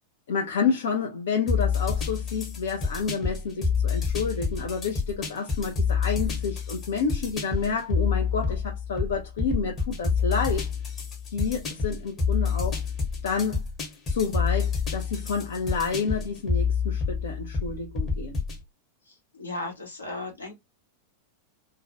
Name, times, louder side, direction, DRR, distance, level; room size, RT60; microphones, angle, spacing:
voice 1, 0.3-10.7 11.3-12.8 13.2-13.6 14.1-18.4, left 5 dB, 60° left, 0.4 m, -29 dB
sound 1, 1.5-18.6, left 5 dB, 25° left, 0.9 m, -28 dB
voice 2, 19.0-20.5, left 2 dB, 80° left, 0.9 m, -36 dB
2.3 x 2.1 x 2.6 m
figure-of-eight pair, 90°, 0 cm